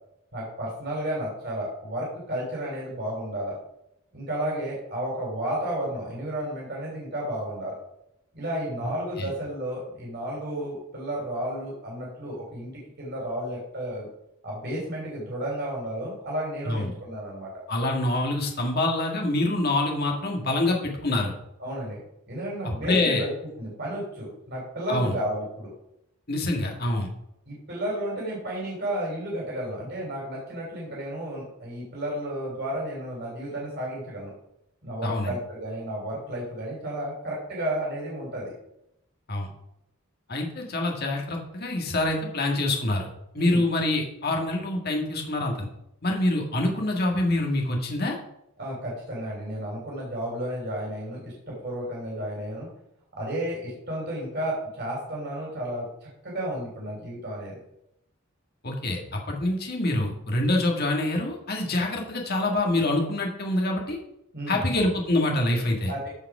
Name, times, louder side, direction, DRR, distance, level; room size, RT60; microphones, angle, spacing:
voice 1, 0.3-3.6 4.1-7.8 8.3-12.7 13.0-14.1 14.4-17.6 21.6-22.0 22.3-23.3 23.6-25.7 27.5-34.3 34.8-38.5 43.4-43.6 48.6-52.7 53.1-57.6 64.3-64.7 65.9-66.1, right 1 dB, 50° right, -4 dB, 3.5 m, -32 dB
voice 2, 17.7-21.3 22.6-23.3 24.9-25.1 26.3-27.1 35.0-35.3 39.3-39.5 40.3-43.1 43.3-45.7 46.0-48.2 58.6-64.0 64.5-65.9, left 2 dB, 45° left, 1 dB, 1.9 m, -26 dB
14.5 x 4.9 x 4.9 m, 0.80 s
head